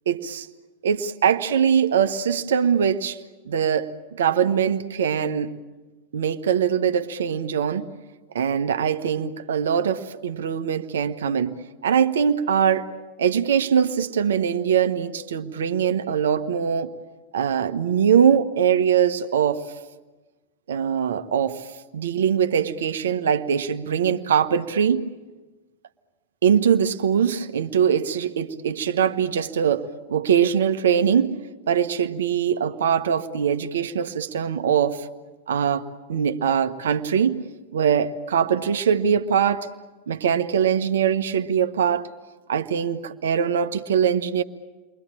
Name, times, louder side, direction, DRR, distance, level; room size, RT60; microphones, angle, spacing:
voice 1, 0.1-0.5 0.8-3.2 3.5-3.9 4.2-5.6 6.1-7.9 8.3-11.5 11.8-12.9 13.2-16.9 17.3-19.6 20.7-21.7 21.9-25.1 26.4-31.4 31.7-35.1 35.5-37.4 37.7-39.7 40.1-42.1 42.5-44.4, right 8 dB, 65° right, 8 dB, 1.2 m, -22 dB
30.0 x 23.5 x 7.5 m, 1.2 s
figure-of-eight pair, 90°, 0 cm